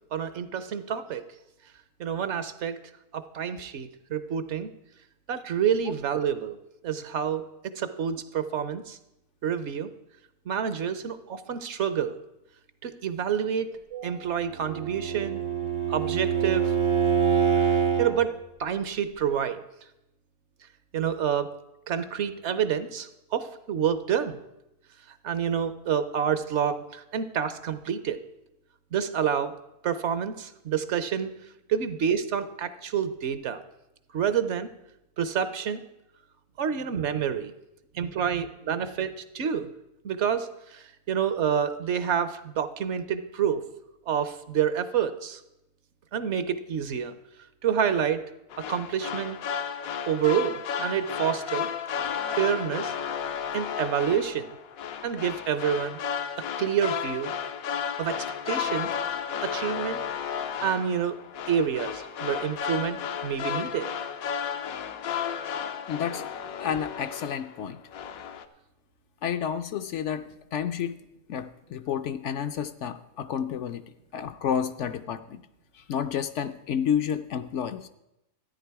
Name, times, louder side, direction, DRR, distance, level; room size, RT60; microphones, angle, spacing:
voice 1, 0.1-1.2 2.0-2.8 3.1-4.7 5.3-6.6 6.8-7.4 7.8-9.0 9.4-9.9 10.5-12.2 12.8-15.4 15.9-16.7 17.6-18.3 18.6-19.6 20.9-21.5 21.9-24.4 25.2-28.2 28.9-29.5 29.8-31.3 31.7-33.6 34.1-34.7 35.2-35.8 36.6-37.5 37.9-39.7 40.0-43.6 44.1-45.4 46.1-47.1 47.6-48.2 48.6-49.4 50.1-51.7 52.4-52.9 53.5-54.5 55.0-56.0 56.6-57.3 58.0-58.9 59.4-60.0 60.3-61.1 61.5-63.9 66.1-66.2, right 8 dB, 60° right, 12 dB, 0.9 m, -28 dB
Bowed string instrument, 14.5-18.2, right 7 dB, 80° right, 2.5 m, -25 dB
sound 1, 48.5-67.6 67.9-68.4, left 8 dB, 85° left, 1.2 m, -33 dB
voice 2, 65.9-66.2 66.6-67.8 69.2-70.2 70.5-70.9 71.3-73.8 74.1-75.4 75.9-77.9, left 8 dB, 70° left, 10 dB, 0.8 m, -30 dB
13.0 x 9.7 x 4.6 m, 0.87 s
omnidirectional pair, 1.4 m